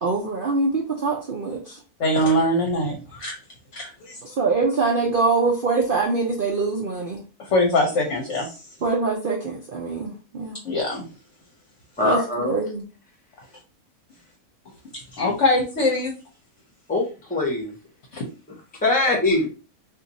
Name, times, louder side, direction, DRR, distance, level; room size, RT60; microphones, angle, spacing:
voice 1, 0.0-1.8 4.2-7.2 8.8-10.6 12.0-12.8, right 4 dB, 70° right, 0 dB, 0.5 m, -24 dB
voice 2, 2.0-3.4 3.7-4.3 7.4-8.5 10.6-11.1 14.9-16.1 18.1-18.2, left 1 dB, 55° left, 0 dB, 1.0 m, -23 dB
voice 3, 12.0-12.6 16.9-17.7 18.8-19.5, left 2 dB, 5° left, 0 dB, 0.8 m, -22 dB
2.7 x 2.5 x 3.9 m, 0.34 s
omnidirectional pair, 1.6 m